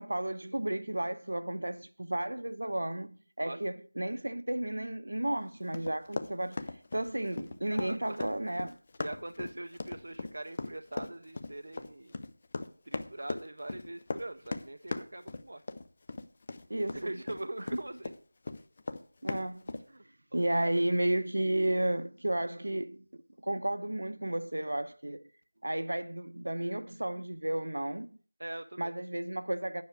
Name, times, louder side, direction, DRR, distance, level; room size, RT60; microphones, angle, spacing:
voice 1, 0.0-6.6 6.9-8.7 16.7-17.2 19.2-19.7 20.3-23.1 23.4-25.2 25.6-28.2 28.8-29.8, right 1 dB, 70° right, 0.9 m, -33 dB
Run, 5.7-18.2 18.4-19.8, left 3 dB, 20° left, 0.4 m, -38 dB
voice 2, 7.7-8.3 9.0-12.2 12.8-15.6 16.9-18.1 19.9-20.0 20.6-20.7 28.4-28.9, right 1 dB, 50° right, 0.5 m, -42 dB
9.5 x 5.9 x 6.7 m
figure-of-eight pair, 180°, 0 cm